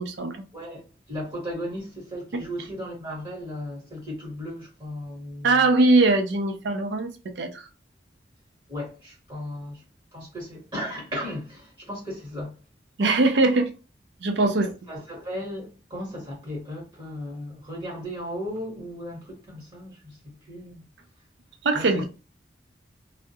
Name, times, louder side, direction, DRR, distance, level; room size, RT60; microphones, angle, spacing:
voice 1, 0.0-0.4 2.3-2.4 5.4-7.7 13.0-13.7 14.2-14.7 21.6-22.0, right 2 dB, 85° right, 0.5 m, -21 dB
voice 2, 0.5-5.6 8.7-9.8 10.1-12.5 14.9-20.2 20.5-20.8 21.7-22.0, equal, 25° right, 1.1 m, -36 dB
2.3 x 2.0 x 2.6 m
head